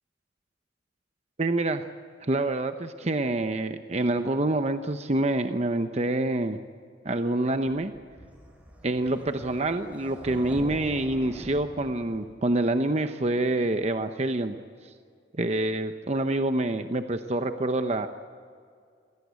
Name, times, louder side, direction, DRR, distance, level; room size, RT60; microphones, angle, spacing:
voice 1, 1.4-1.9 2.2-6.6 7.0-7.9 8.8-14.6 15.3-18.1, right 2 dB, 40° right, 8 dB, 0.8 m, -26 dB
whoosh screamy descending, 7.9-12.6, equal, 10° right, 4.2 m, -45 dB
26.0 x 17.5 x 8.3 m, 2.2 s
head